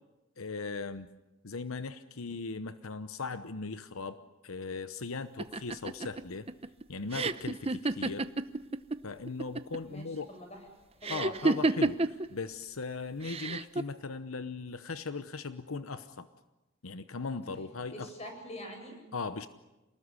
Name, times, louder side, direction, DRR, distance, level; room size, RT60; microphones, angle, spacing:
voice 1, 0.4-1.1 1.4-4.2 4.4-6.5 6.9-8.3 9.0-10.3 11.1-16.3 16.8-18.1 19.1-19.5, left 4 dB, 85° left, 11 dB, 1.0 m, -38 dB
sound 1, 5.4-9.0 9.3-9.9 11.0-12.3 13.2-13.8, right 2 dB, 30° right, 0.8 m, -30 dB
voice 2, 9.9-10.6 10.9-11.6 17.9-19.0, equal, 30° left, 3 dB, 7.9 m, -45 dB
28.0 x 19.5 x 9.8 m, 1.0 s
head